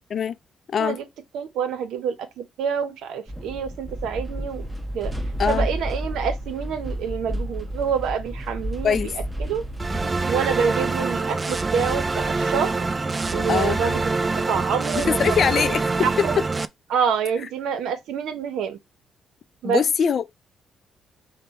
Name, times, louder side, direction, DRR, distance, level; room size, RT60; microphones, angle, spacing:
voice 1, 1.3-4.7 4.9-5.1 5.5-9.1 9.4-9.6 10.3-12.9 13.3-15.2 16.0-16.4 16.9-18.8 19.6-19.8, right 7 dB, 85° right, 0.8 m, -27 dB
sound 1, 3.3-10.3, equal, 10° right, 0.9 m, -31 dB
sound 2, 9.8-16.7, right 3 dB, 25° right, 0.4 m, -25 dB
voice 2, 13.5-13.8 15.0-15.8 19.6-20.3, left 7 dB, 55° left, 0.4 m, -22 dB
5.3 x 2.2 x 4.1 m
cardioid pair, 90°, 0 cm